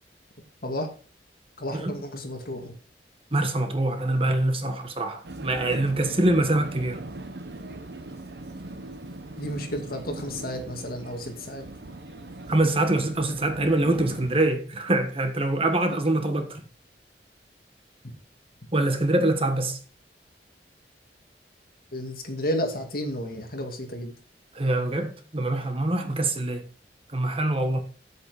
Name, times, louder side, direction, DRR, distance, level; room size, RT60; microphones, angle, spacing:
voice 1, 1.6-2.7 9.4-11.7 15.9-16.0 21.9-24.1, equal, 55° left, 2.3 m, -32 dB
voice 2, 3.3-7.0 12.5-16.6 18.7-19.8 24.5-26.6 27.1-27.8, right 2 dB, 30° right, 1.4 m, -24 dB
Vehicle, 5.2-14.5, right 2 dB, 65° right, 0.9 m, -40 dB
8.4 x 8.2 x 5.1 m
head